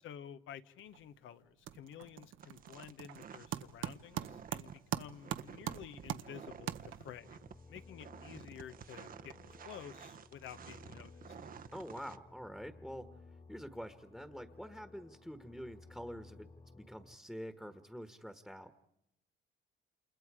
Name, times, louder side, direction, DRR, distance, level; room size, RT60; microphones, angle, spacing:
voice 1, 0.0-7.4 7.7-9.4 9.6-11.2, left 9 dB, 80° left, 11 dB, 1.0 m, -51 dB
sound 1, 0.8-1.2 1.4-7.3, right 11 dB, 80° right, 0.9 m, -42 dB
sound 2, 2.4-12.2, right 7 dB, 45° right, 0.8 m, -52 dB
sound 3, 7.1-17.2, left 3 dB, 35° left, 1.9 m, -57 dB
voice 2, 11.7-13.1 13.5-16.5 16.7-18.7, equal, ahead, 9 dB, 1.4 m, -46 dB
29.0 x 28.0 x 5.0 m, 0.79 s
cardioid pair, 90°, 20 cm